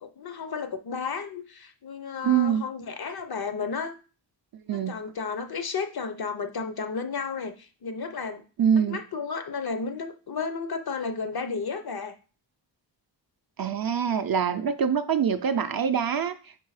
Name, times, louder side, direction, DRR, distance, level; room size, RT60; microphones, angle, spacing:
voice 1, 0.0-3.9 4.7-8.4 8.7-12.2, left 5 dB, 55° left, 9 dB, 0.7 m, -33 dB
voice 2, 2.2-2.6 4.7-5.0 8.6-9.0 13.6-16.4, right 8 dB, 55° right, 9 dB, 0.5 m, -24 dB
4.7 x 4.5 x 4.7 m, 0.37 s
wide cardioid pair, 130°, 44 cm